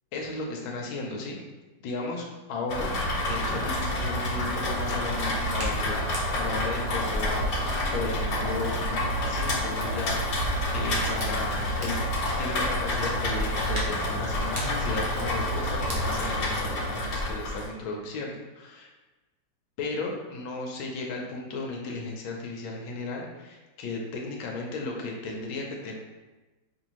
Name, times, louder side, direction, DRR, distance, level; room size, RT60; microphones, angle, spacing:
voice 1, 0.1-1.4 1.8-3.0 3.3-6.1 6.3-12.0 12.4-18.9 19.8-25.9, left 3 dB, 90° left, 0 dB, 1.5 m, -35 dB
Rain, 2.7-17.7, left 1 dB, 65° left, 1.3 m, -28 dB
Hands, 3.7-17.7, equal, 45° right, 0.7 m, -39 dB
5.2 x 2.6 x 3.0 m, 1.2 s
omnidirectional pair, 2.1 m